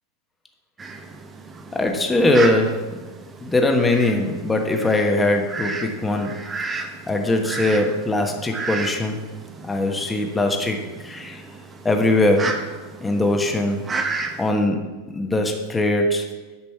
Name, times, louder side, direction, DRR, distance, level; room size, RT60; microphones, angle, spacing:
Fowl, 0.8-14.5, right 3 dB, 20° right, 1.0 m, -33 dB
voice 1, 1.7-2.8 3.4-6.3 6.7-9.2 9.7-11.4 11.8-12.6 13.0-13.8 14.4-14.8 15.1-16.3, left 2 dB, 15° left, 3 dB, 1.2 m, -21 dB
8.8 x 6.0 x 4.6 m, 1.2 s
hypercardioid pair, 95°, 0 cm